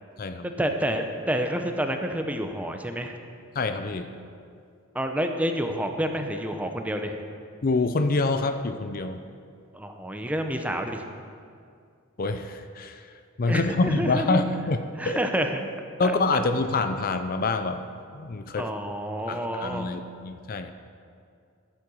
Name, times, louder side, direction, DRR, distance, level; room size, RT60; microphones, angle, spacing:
voice 1, 0.6-3.1 4.9-7.2 9.7-11.0 13.5-14.4 15.0-15.7 16.0-16.4 18.6-19.9, equal, 5° right, 5 dB, 0.7 m, -29 dB
voice 2, 3.6-4.1 7.6-9.2 12.2-13.0 13.4-15.2 16.0-17.8 18.1-18.7 19.3-20.7, left 3 dB, 45° left, 9 dB, 0.5 m, -26 dB
11.5 x 8.6 x 6.3 m, 2.3 s
head